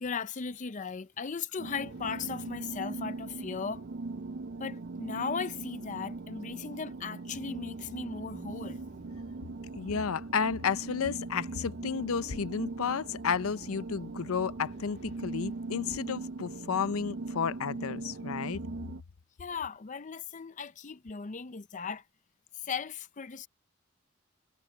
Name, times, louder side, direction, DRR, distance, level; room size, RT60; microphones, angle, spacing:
voice 1, 0.0-3.8 4.6-8.8 19.4-22.0 22.5-23.5, left 5 dB, 35° left, 0.5 m, -37 dB
sound 1, 1.6-19.0, right 3 dB, 50° right, 0.5 m, -40 dB
sound 2, 1.8-5.5 8.6-12.3 14.6-18.1, left 1 dB, 55° left, 2.0 m, -64 dB
sound 3, 7.3-15.6, equal, 5° left, 1.8 m, -56 dB
voice 2, 9.7-18.6, left 6 dB, 80° left, 0.6 m, -32 dB
head